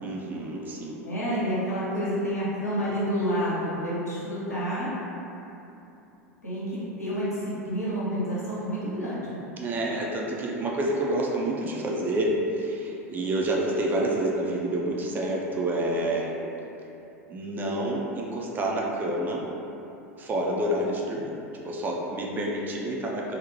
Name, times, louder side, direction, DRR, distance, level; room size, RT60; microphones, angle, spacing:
voice 1, 0.0-1.0 9.6-16.4 17.3-19.5 20.2-21.3 21.6-23.4, right 1 dB, 25° right, -2 dB, 0.3 m, -28 dB
voice 2, 1.0-5.0 6.4-9.4, equal, 85° left, -10 dB, 0.8 m, -29 dB
2.7 x 2.1 x 2.8 m, 2.9 s
figure-of-eight pair, 80°, 8 cm